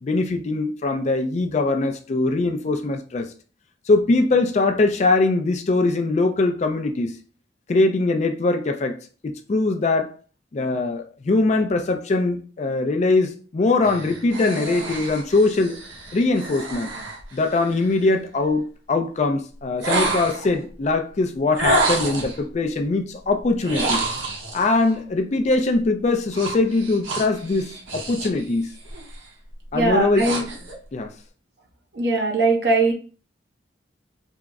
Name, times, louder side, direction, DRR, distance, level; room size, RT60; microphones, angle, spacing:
voice 1, 0.0-3.3 3.9-7.1 7.7-9.0 9.2-10.1 10.5-15.7 16.1-16.9 17.3-24.0 24.5-28.7 29.7-30.3 30.9-31.1, left 3 dB, 35° left, 0.3 m, -22 dB
sound 1, 13.8-18.0 19.8-20.6 21.6-22.4 23.6-24.7 26.3-28.4 28.8-29.2 29.7-30.8, right 2 dB, 85° right, 0.9 m, -28 dB
voice 2, 29.7-30.4 31.9-32.9, right 3 dB, 55° right, 0.8 m, -20 dB
3.5 x 2.0 x 3.4 m
head